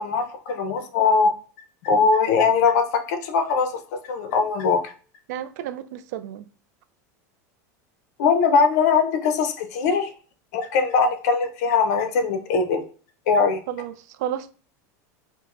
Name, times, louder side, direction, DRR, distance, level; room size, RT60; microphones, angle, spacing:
voice 1, 0.0-1.3 1.8-4.9 8.2-10.1 10.5-12.8 13.3-13.6, left 5 dB, 70° left, 0.7 m, -21 dB
voice 2, 5.3-6.5 13.7-14.5, right 11 dB, 75° right, 0.4 m, -32 dB
5.1 x 2.1 x 2.5 m
supercardioid pair, 130°, 9 cm